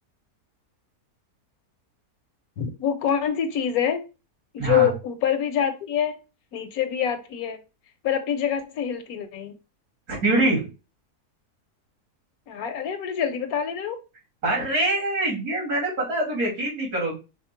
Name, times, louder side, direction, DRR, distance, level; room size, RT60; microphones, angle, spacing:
voice 1, 2.6-4.0 4.5-6.2 6.5-7.6 8.0-9.6 12.5-14.0, left 9 dB, 75° left, 8 dB, 1.1 m, -25 dB
voice 2, 4.6-4.9 10.1-10.7 14.4-17.2, right 2 dB, 70° right, -3 dB, 2.7 m, -24 dB
5.0 x 2.0 x 4.3 m, 0.29 s
omnidirectional pair, 1.6 m